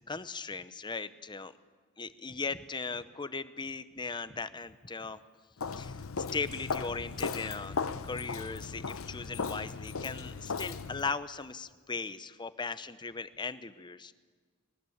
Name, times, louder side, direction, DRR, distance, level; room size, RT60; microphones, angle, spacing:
voice 1, 0.1-1.5 2.0-5.2 5.6-6.0 6.3-7.7 8.0-14.1, left 4 dB, 20° left, 14 dB, 0.7 m, -38 dB
Walk footsteps, 5.6-11.1, left 5 dB, 80° left, 0.8 m, -37 dB
21.0 x 18.5 x 8.5 m, 1.5 s
head